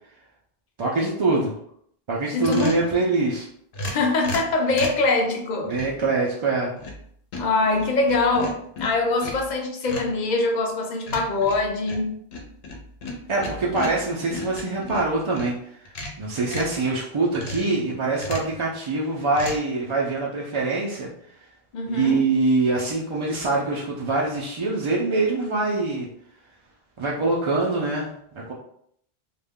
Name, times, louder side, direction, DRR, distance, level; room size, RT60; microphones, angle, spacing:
voice 1, 0.8-1.5 2.1-3.5 5.6-6.8 13.3-15.5 16.2-21.1 21.9-26.1 27.0-28.1 28.3-28.5, right 3 dB, 50° right, -4 dB, 0.3 m, -24 dB
voice 2, 2.3-3.0 3.8-5.7 7.4-12.2 21.7-22.2, left 3 dB, 55° left, 2 dB, 0.6 m, -23 dB
sound 1, 2.4-2.9 3.7-5.1 5.7-6.0 6.5-7.0 7.3-9.5 9.9-10.2 11.1-15.5 15.8-16.8 17.3-17.8 18.1-18.6 19.3-19.6, left 1 dB, 80° left, 0.9 m, -35 dB
2.4 x 2.2 x 3.5 m, 0.68 s
omnidirectional pair, 1.0 m